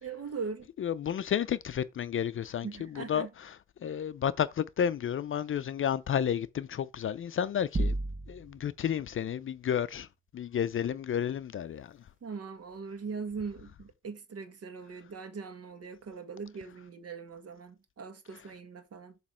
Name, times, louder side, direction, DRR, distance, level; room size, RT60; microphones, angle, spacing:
voice 1, 0.0-0.7 2.6-3.3 12.2-19.2, right 5 dB, 50° right, 1.6 m, -40 dB
voice 2, 0.8-3.6 3.8-7.9 8.3-10.1 10.3-12.0, left 9 dB, 45° left, 0.5 m, -31 dB
sound 1, 7.7-8.7, right 2 dB, 25° right, 1.0 m, -31 dB
7.2 x 3.1 x 6.2 m
cardioid pair, 90°, 30 cm